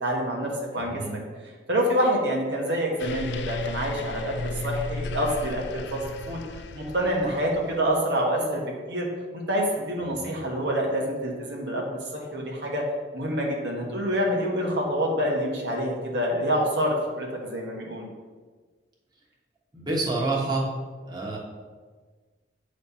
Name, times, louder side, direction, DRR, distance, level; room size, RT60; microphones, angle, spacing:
voice 1, 0.0-1.2 1.7-6.0 6.2-6.4 6.7-9.1 9.3-12.8 13.1-18.1, equal, 65° right, -1 dB, 1.2 m, -27 dB
voice 2, 0.7-1.1 10.0-10.3 19.7-20.6 21.0-21.4, right 2 dB, 25° right, -4 dB, 1.3 m, -28 dB
sound 1, 3.0-7.9, left 3 dB, 65° left, 0.4 m, -35 dB
8.5 x 3.2 x 5.5 m, 1.4 s
head